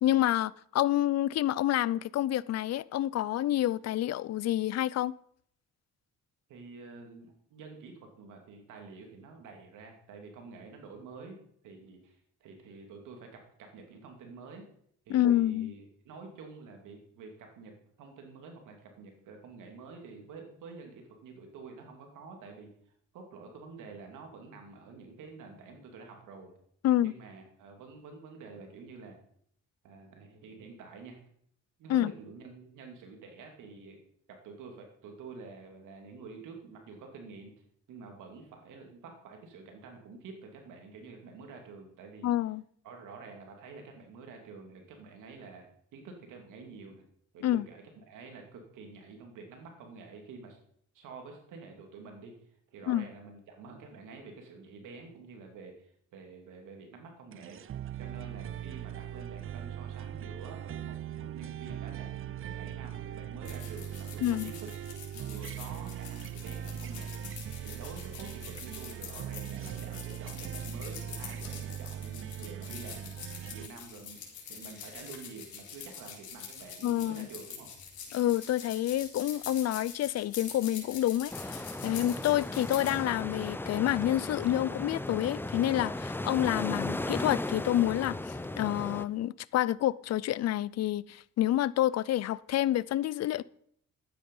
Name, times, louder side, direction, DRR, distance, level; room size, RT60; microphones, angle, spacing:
voice 1, 0.0-5.1 15.1-15.7 26.8-27.1 31.9-32.1 42.2-42.6 47.4-47.7 52.9-53.1 64.2-64.5 76.8-77.3 78.1-81.6 81.8-93.4, left 13 dB, 60° left, 0.5 m, -28 dB
voice 2, 6.5-11.4 11.6-14.6 15.1-22.7 23.1-26.5 27.0-29.2 29.8-31.2 31.8-34.0 34.3-37.5 37.9-42.3 42.8-45.6 45.9-47.0 47.3-50.6 50.9-52.3 52.7-57.6 58.0-64.7 65.2-67.2 67.6-74.2 74.5-77.7, right 4 dB, 85° right, 2.8 m, -48 dB
sound 1, 57.3-73.7, right 10 dB, 45° right, 0.5 m, -40 dB
sound 2, 63.4-83.0, left 7 dB, 75° left, 4.2 m, -45 dB
sound 3, 81.3-89.1, left 2 dB, 5° left, 0.6 m, -36 dB
12.0 x 9.4 x 5.4 m
cardioid pair, 90°, 30 cm